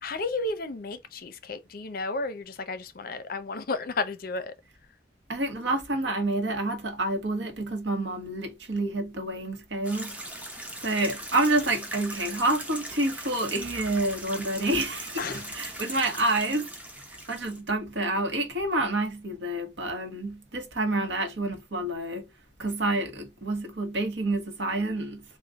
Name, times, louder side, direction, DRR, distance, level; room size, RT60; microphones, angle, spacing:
voice 1, 0.0-4.5 15.2-15.5, left 3 dB, 55° left, 0.6 m, -33 dB
voice 2, 5.3-10.2 10.8-16.7 17.3-22.3 22.6-25.2, right 2 dB, 85° right, 1.1 m, -28 dB
sound 1, 9.8-17.6, right 1 dB, 10° right, 0.8 m, -40 dB
3.7 x 2.4 x 3.4 m
head